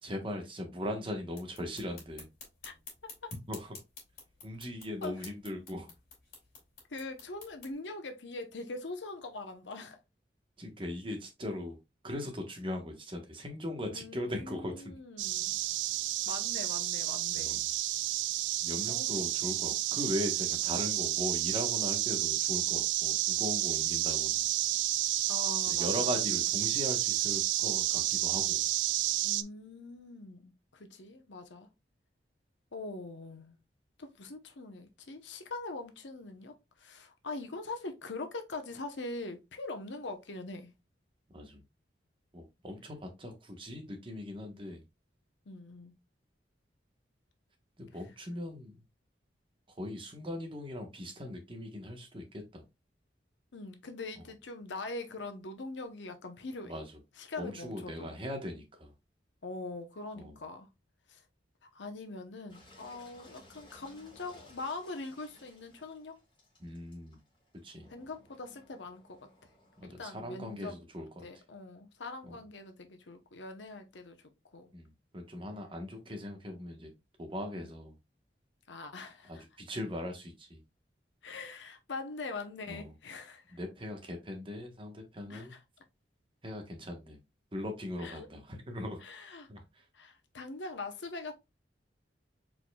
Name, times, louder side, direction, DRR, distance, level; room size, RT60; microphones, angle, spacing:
voice 1, 0.0-2.3 3.5-3.7 4.4-5.9 10.6-11.8 12.0-15.0 17.3-17.6 18.6-24.4 25.7-28.7 41.3-41.6 42.3-44.8 47.8-48.8 49.8-52.6 56.6-56.8 57.4-58.9 60.2-60.3 66.6-67.2 67.6-67.9 69.8-71.2 72.3-72.4 74.7-76.9 77.2-78.0 79.3-80.6 82.7-82.9 83.5-85.5 86.4-87.2 87.5-89.0 89.5-89.6, left 1 dB, 30° right, 1.1 m, -39 dB
sound 1, 1.3-7.7, left 4 dB, 55° left, 2.8 m, -52 dB
voice 2, 6.9-10.0 13.9-15.6 16.2-17.6 18.9-19.3 25.3-26.2 29.2-31.7 32.7-33.6 34.0-40.7 45.5-45.9 53.5-56.8 57.2-58.1 59.4-60.7 61.1-61.2 61.6-66.2 67.9-69.2 69.8-74.2 74.5-74.7 77.5-77.7 78.7-79.4 81.2-83.6 85.3-85.6 88.0-88.3 89.0-89.5 89.9-91.3, left 3 dB, 90° left, 0.9 m, -42 dB
sound 2, 15.2-29.4, right 14 dB, 85° right, 0.3 m, -31 dB
Engine, 62.5-69.8, left 1 dB, 30° left, 2.1 m, -59 dB
4.5 x 4.3 x 2.3 m
head